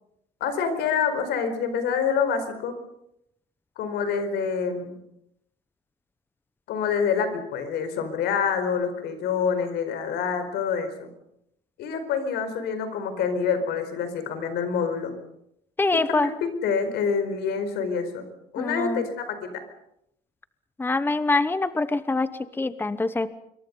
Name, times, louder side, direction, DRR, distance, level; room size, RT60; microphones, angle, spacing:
voice 1, 0.4-2.8 3.8-5.0 6.7-11.1 11.8-15.1 15.9-18.2 18.5-19.6, left 6 dB, 80° left, 9 dB, 4.6 m, -27 dB
voice 2, 15.8-16.3 18.6-19.0 20.8-23.3, left 3 dB, 10° left, 13 dB, 1.0 m, -25 dB
26.5 x 23.0 x 5.4 m, 0.77 s
cardioid pair, 110°, 17 cm